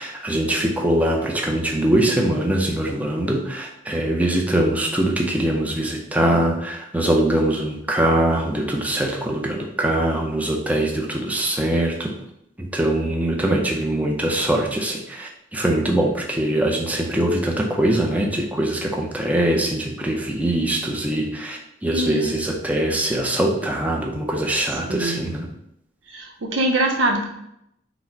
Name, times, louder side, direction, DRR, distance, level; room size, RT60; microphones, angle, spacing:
voice 1, 0.0-12.1 12.6-25.5, right 1 dB, 10° right, 0 dB, 0.5 m, -22 dB
voice 2, 21.9-22.4 24.9-25.2 26.1-27.3, right 1 dB, 85° right, 3 dB, 0.7 m, -23 dB
4.0 x 2.1 x 4.4 m, 0.77 s
head